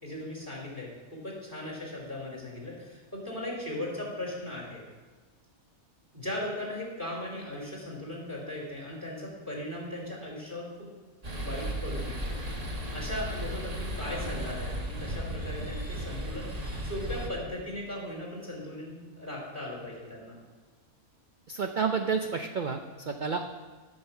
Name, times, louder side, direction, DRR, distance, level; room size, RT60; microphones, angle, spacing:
voice 1, 0.0-4.8 6.1-10.7 11.4-12.4 12.9-16.5 16.8-20.4, left 1 dB, 15° right, -3 dB, 3.0 m, -38 dB
sound 1, 11.2-17.3, right 1 dB, 30° right, 1.1 m, -35 dB
voice 2, 21.5-22.8 23.1-23.5, right 5 dB, 60° right, 5 dB, 0.5 m, -29 dB
8.7 x 6.4 x 7.0 m, 1.4 s
omnidirectional pair, 1.5 m